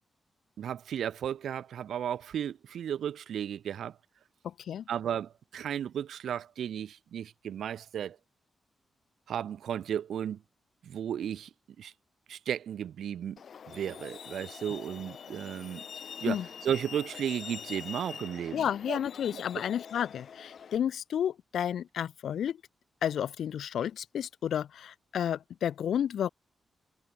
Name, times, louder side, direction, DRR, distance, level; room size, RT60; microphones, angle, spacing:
voice 1, 0.6-4.0 4.9-8.2 9.3-10.4 10.8-11.5 11.8-11.9 12.3-13.4 13.7-15.8 16.2-19.0 19.3-19.4, right 9 dB, 90° right, 1.0 m, -34 dB
Truck, 13.4-20.8, left 7 dB, 55° left, 3.0 m, -45 dB
voice 2, 18.5-22.6 23.0-26.3, left 9 dB, 90° left, 1.2 m, -31 dB
wide cardioid pair, 180°, 0 cm